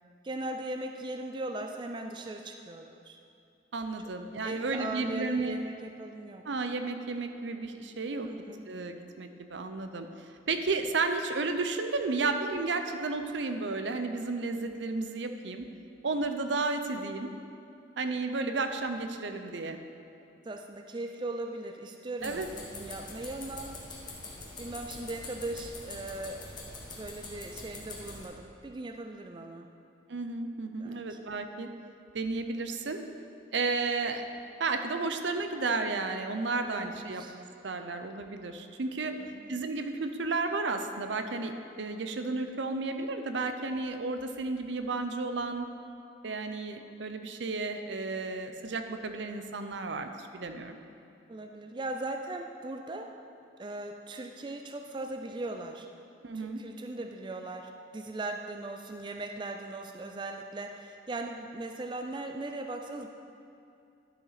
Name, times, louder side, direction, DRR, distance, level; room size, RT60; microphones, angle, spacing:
voice 1, 0.2-3.2 4.4-6.4 8.2-8.7 20.4-23.7 24.6-26.5 27.0-29.7 30.8-31.2 36.7-37.4 39.0-39.5 51.3-53.2 53.6-55.9 56.3-63.1, right 2 dB, 25° right, 4 dB, 0.3 m, -39 dB
voice 2, 3.7-5.5 6.5-8.3 8.7-10.1 10.5-15.7 16.0-17.3 18.0-19.8 22.2-22.5 30.1-31.7 32.1-33.0 33.5-34.2 34.6-37.2 37.6-39.1 39.5-45.7 46.2-50.8 56.2-56.6, right 3 dB, 75° right, 7 dB, 0.6 m, -32 dB
sound 1, 22.2-28.2, left 2 dB, 25° left, 1.2 m, -44 dB
11.5 x 7.0 x 4.1 m, 2.6 s
head